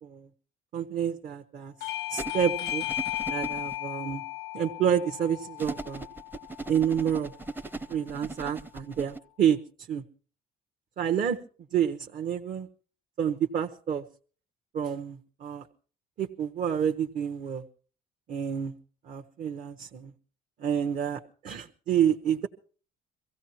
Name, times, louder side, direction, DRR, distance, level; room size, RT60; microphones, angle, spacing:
voice 1, 0.7-1.7 2.1-2.9 3.3-4.2 4.5-6.0 6.7-7.3 7.9-9.6 9.9-10.0 11.0-11.4 11.7-12.7 13.2-14.0 14.7-15.7 16.2-17.6 18.3-18.8 19.0-20.1 20.6-22.5, right 9 dB, 55° right, 2 dB, 1.0 m, -28 dB
Bell / Doorbell, 1.8-7.0, left 14 dB, 90° left, 0.8 m, -35 dB
sound 1, 2.2-3.8 5.6-9.2, right 2 dB, 10° right, 0.6 m, -38 dB
23.5 x 16.0 x 2.9 m, 0.40 s
cardioid pair, 110°, 17 cm